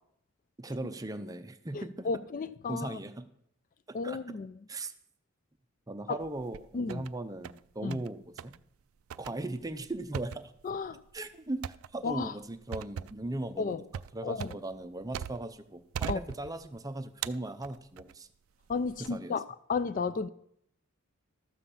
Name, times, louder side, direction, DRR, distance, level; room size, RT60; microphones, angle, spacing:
voice 1, 0.6-2.3 2.7-3.3 3.9-4.2 4.7-4.9 5.9-8.6 9.2-10.5 11.1-13.8 14.1-18.3 19.0-19.4, right 2 dB, 15° right, 0.5 m, -38 dB
voice 2, 1.7-3.0 3.9-4.6 6.1-6.2 6.7-7.1 7.8-8.0 10.6-11.0 12.0-12.3 13.6-13.8 14.2-14.6 16.1-16.2 18.7-19.4 19.7-20.3, left 4 dB, 40° left, 0.3 m, -33 dB
sound 1, 6.2-7.1 7.4-8.1 8.4-8.6 9.1-15.6 15.9-16.8 17.2-18.2 18.7-19.1, right 8 dB, 75° right, 0.3 m, -41 dB
13.0 x 5.7 x 6.9 m
head